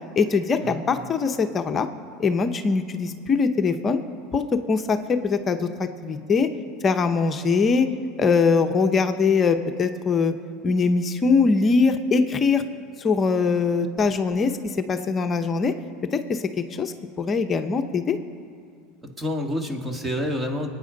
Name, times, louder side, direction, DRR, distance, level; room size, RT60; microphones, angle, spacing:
voice 1, 0.2-1.9 2.2-4.0 4.3-6.5 6.8-7.9 8.2-10.3 10.6-12.6 13.0-15.7 16.1-18.2, left 4 dB, 30° left, 7 dB, 0.8 m, -22 dB
voice 2, 19.0-20.7, left 1 dB, 15° right, 3 dB, 1.9 m, -28 dB
25.0 x 9.4 x 4.0 m, 2.2 s
hypercardioid pair, 95°, 0 cm